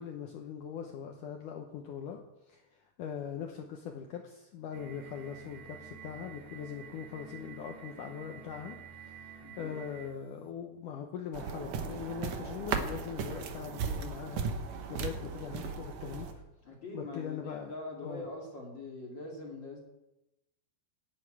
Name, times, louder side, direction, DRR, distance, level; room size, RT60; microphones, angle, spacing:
voice 1, 0.0-2.2 2.5-8.8 9.0-16.4 16.9-17.7 18.0-18.3, left 8 dB, 70° left, 3 dB, 2.0 m, -41 dB
sound 1, 4.7-10.3, right 6 dB, 85° right, 3.6 m, -50 dB
voice 2, 9.4-9.8 16.6-19.8, left 2 dB, 35° left, -2 dB, 2.1 m, -43 dB
sound 2, 11.3-16.3, right 5 dB, 70° right, 1.7 m, -36 dB
11.0 x 8.3 x 8.9 m, 0.93 s
omnidirectional pair, 4.7 m